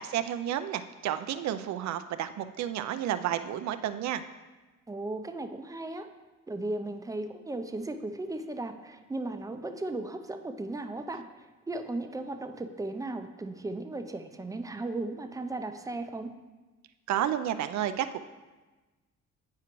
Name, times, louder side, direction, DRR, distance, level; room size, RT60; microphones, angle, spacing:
voice 1, 0.0-4.2 17.1-18.2, right 11 dB, 65° right, 11 dB, 0.5 m, -31 dB
voice 2, 4.9-6.1 6.5-11.3 11.7-16.3, right 2 dB, 10° right, 7 dB, 0.5 m, -36 dB
9.4 x 4.8 x 3.0 m, 1.2 s
cardioid pair, 90°, 30 cm